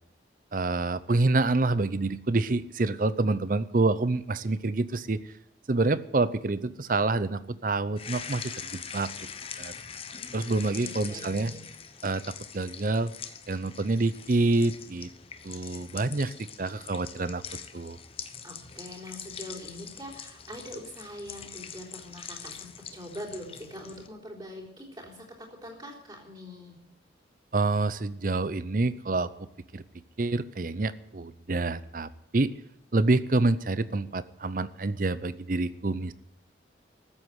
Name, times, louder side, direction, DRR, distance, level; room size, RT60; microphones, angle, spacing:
voice 1, 0.5-5.2 5.7-9.1 9.6-9.7 10.3-11.5 12.0-13.1 13.5-15.1 15.4-16.3 16.6-17.4 17.7-18.0 27.5-29.3 29.7-29.8 30.2-32.5 32.9-36.1, right 2 dB, 45° right, 16 dB, 0.6 m, -27 dB
sound 1, 8.0-24.1, left 7 dB, 30° left, 0.9 m, -43 dB
voice 2, 10.7-11.6 18.4-26.8, equal, 25° right, -4 dB, 3.8 m, -43 dB
14.0 x 8.1 x 9.3 m, 0.85 s
head